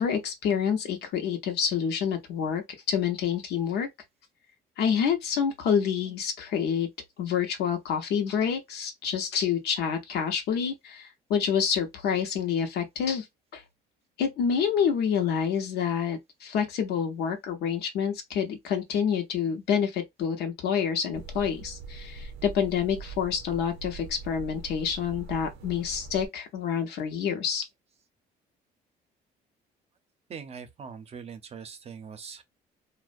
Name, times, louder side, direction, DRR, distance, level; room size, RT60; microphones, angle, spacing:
voice 1, 0.0-2.6 2.9-3.9 4.8-6.9 7.2-13.3 13.5-13.6 14.2-27.7, left 7 dB, 75° left, 0.6 m, -28 dB
sound 1, 21.1-26.3, right 4 dB, 90° right, 0.5 m, -42 dB
voice 2, 30.3-32.4, right 6 dB, 40° right, 0.6 m, -42 dB
2.5 x 2.1 x 2.5 m
cardioid pair, 110°, 17 cm